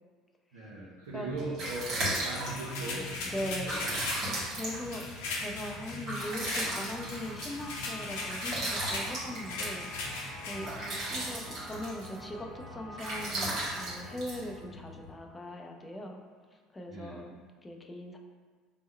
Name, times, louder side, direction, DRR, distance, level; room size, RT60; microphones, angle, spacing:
voice 1, 0.5-3.5 3.8-4.2 5.9-6.0 10.5-10.7 16.9-17.2, right 2 dB, 70° right, -5 dB, 0.5 m, -40 dB
voice 2, 1.1-1.5 3.2-3.8 4.5-16.2 16.5-18.2, left 1 dB, 20° left, 2 dB, 0.5 m, -40 dB
sound 1, 1.1-15.1, right 1 dB, 45° right, 1.4 m, -37 dB
sound 2, 2.2-10.7, left 3 dB, 65° left, 0.6 m, -39 dB
sound 3, 6.5-16.2, right 1 dB, 25° right, 0.9 m, -49 dB
3.5 x 2.1 x 4.2 m, 1.5 s
figure-of-eight pair, 65°, 0 cm